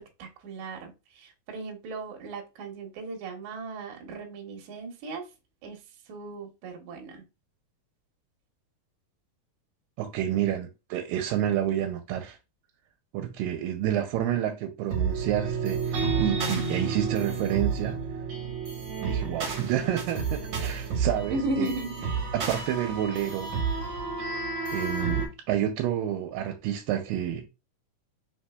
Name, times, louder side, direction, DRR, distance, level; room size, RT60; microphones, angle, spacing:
voice 1, 0.2-5.3 5.6-5.8 6.1-7.2 21.3-22.1, right 2 dB, 75° right, 2.0 m, -36 dB
voice 2, 10.0-12.4 13.1-18.0 19.0-21.7 22.3-23.5 24.7-27.5, right 11 dB, 90° right, 2.3 m, -29 dB
sound 1, 14.9-25.3, right 5 dB, 55° right, 1.5 m, -30 dB
4.7 x 3.5 x 2.2 m
omnidirectional pair, 3.9 m